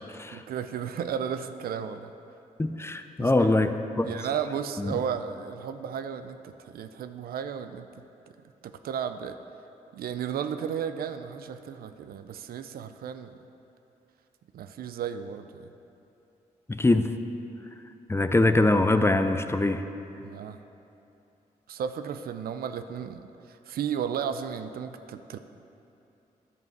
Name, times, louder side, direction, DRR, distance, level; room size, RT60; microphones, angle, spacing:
voice 1, 0.3-2.1 3.2-3.6 4.0-7.9 8.6-9.4 9.9-13.3 14.5-15.7 20.2-20.6 21.7-25.4, right 8 dB, 70° right, 10 dB, 0.4 m, -34 dB
voice 2, 2.6-4.1 4.8-5.0 16.7-17.1 18.1-19.8, left 2 dB, 15° left, 9 dB, 0.5 m, -23 dB
10.5 x 5.4 x 4.6 m, 2.8 s
supercardioid pair, 50°, 16 cm